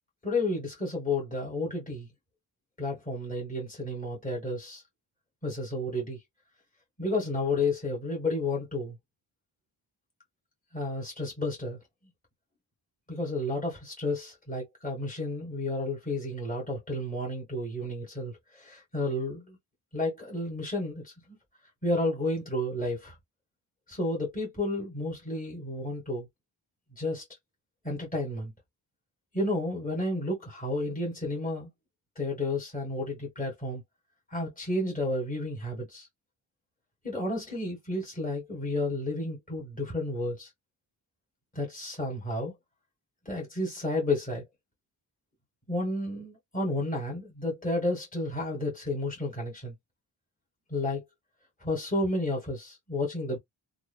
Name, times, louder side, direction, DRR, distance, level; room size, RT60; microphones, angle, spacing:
voice 1, 0.2-2.1 2.8-4.8 5.4-6.2 7.0-9.0 10.7-11.8 13.1-19.6 19.9-21.1 21.8-23.1 23.9-26.3 27.0-27.2 27.8-28.5 29.3-31.7 32.1-33.8 34.3-36.1 37.0-40.5 41.5-42.5 43.2-44.4 45.7-49.7 50.7-51.0 51.6-53.4, left 2 dB, 15° left, 1.6 m, -31 dB
2.8 x 2.6 x 2.3 m
wide cardioid pair, 100°, 47 cm